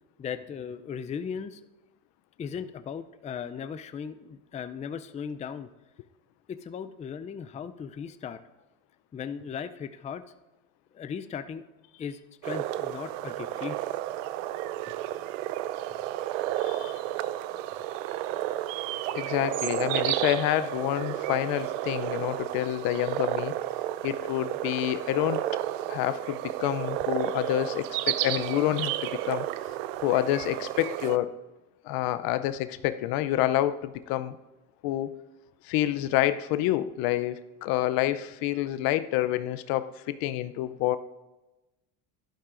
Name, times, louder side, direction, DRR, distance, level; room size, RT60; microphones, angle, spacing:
voice 1, 0.2-1.6 2.4-5.7 6.5-8.4 9.1-10.2 10.9-11.6 12.0-13.8, left 7 dB, 20° left, 11 dB, 0.4 m, -37 dB
sound 1, 12.4-31.2, right 14 dB, 80° right, 0.6 m, -32 dB
voice 2, 16.6-17.0 19.1-23.6 24.0-25.4 25.9-29.5 30.0-31.3 31.8-34.4 34.8-35.1 35.6-41.0, left 14 dB, 65° left, 13 dB, 0.6 m, -28 dB
12.0 x 11.5 x 2.5 m, 1.0 s
supercardioid pair, 90°, 38 cm